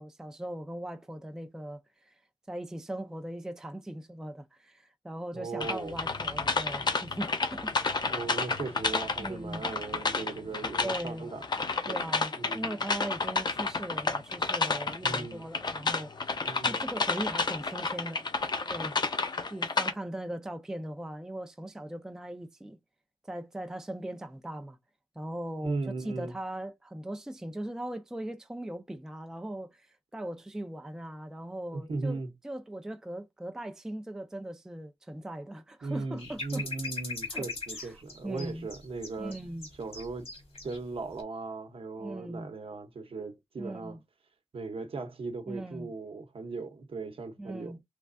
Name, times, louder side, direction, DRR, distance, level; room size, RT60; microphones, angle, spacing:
voice 1, 0.0-2.1 2.5-8.0 9.2-9.7 10.8-11.3 11.9-16.1 16.6-18.3 18.7-19.0 19.5-22.8 23.2-24.8 25.2-36.7 37.3-37.5 37.8-38.7 39.2-39.7 42.0-42.5 43.6-44.0 45.5-45.9 47.4-47.8, right 1 dB, 5° right, 0.4 m, -39 dB
voice 2, 5.3-6.0 8.1-11.4 11.9-12.1 12.3-12.7 15.0-15.5 16.4-16.8 25.6-26.3 31.7-32.3 35.8-39.4 39.8-40.3 40.6-44.0 44.5-47.7, right 3 dB, 55° right, 0.8 m, -38 dB
sound 1, 5.6-19.9, left 4 dB, 40° left, 0.6 m, -31 dB
sound 2, 36.2-40.8 41.1-41.2, left 3 dB, 60° left, 1.4 m, -39 dB
3.4 x 3.2 x 2.5 m
wide cardioid pair, 140°, 11 cm